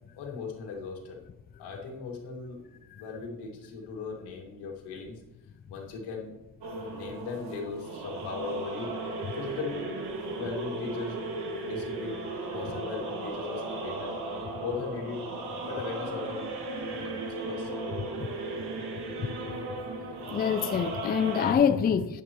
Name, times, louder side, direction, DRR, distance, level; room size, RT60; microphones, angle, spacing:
voice 1, 0.2-1.2 1.6-2.6 2.9-5.2 5.7-6.4 6.9-8.9 9.4-9.9 10.4-11.2 11.6-14.1 14.6-15.2 15.6-16.6 17.0-17.2 17.4-17.7, left 4 dB, 85° left, 2.3 m, -38 dB
sound 1, 6.6-21.5, right 2 dB, 75° right, 2.0 m, -36 dB
voice 2, 19.2-19.6 19.9-22.2, left 7 dB, 25° left, 0.4 m, -27 dB
11.5 x 9.3 x 3.1 m
cardioid pair, 105°, 39 cm